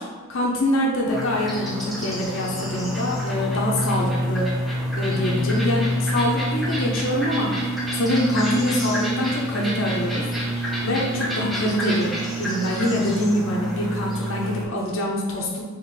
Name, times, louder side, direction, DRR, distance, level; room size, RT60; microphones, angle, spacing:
voice 1, 0.0-4.5 5.0-10.3 10.8-15.6, left 1 dB, 65° left, -3 dB, 0.7 m, -25 dB
sound 1, 1.0-14.6, equal, ahead, 0.7 m, -27 dB
3.6 x 3.0 x 3.2 m, 1.3 s
head